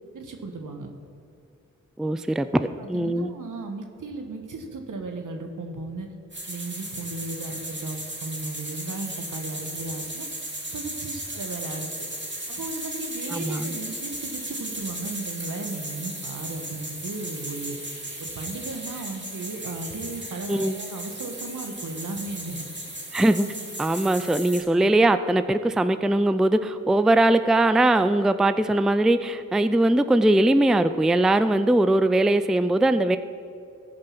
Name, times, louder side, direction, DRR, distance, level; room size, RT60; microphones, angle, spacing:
voice 1, 0.1-0.9 2.8-6.1 6.5-10.3 10.7-11.9 12.5-17.8 18.2-22.7, right 3 dB, 70° right, 4 dB, 1.4 m, -35 dB
voice 2, 2.0-3.3 13.3-13.8 20.5-20.8 23.1-23.5 23.8-33.2, right 1 dB, ahead, 11 dB, 0.4 m, -21 dB
sound 1, 6.3-24.6, right 1 dB, 35° right, 3.0 m, -36 dB
14.5 x 5.3 x 5.9 m, 2.5 s
cardioid pair, 40°, 33 cm